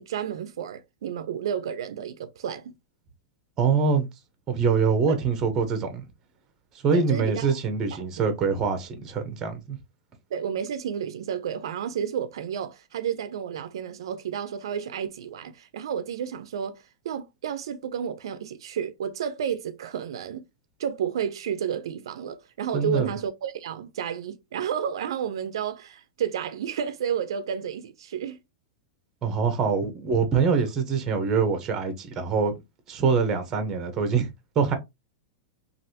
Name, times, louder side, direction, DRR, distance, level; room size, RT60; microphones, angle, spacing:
voice 1, 0.0-2.7 5.1-5.2 6.9-7.6 7.9-8.1 10.3-20.4 20.8-28.4 30.5-30.7, right 8 dB, 80° right, 0.4 m, -31 dB
voice 2, 3.6-4.1 4.5-6.0 6.8-9.8 22.7-23.1 29.2-32.5 32.9-34.3 34.6-34.8, right 5 dB, 25° right, 0.8 m, -24 dB
3.2 x 2.4 x 2.7 m
supercardioid pair, 155°, 3 cm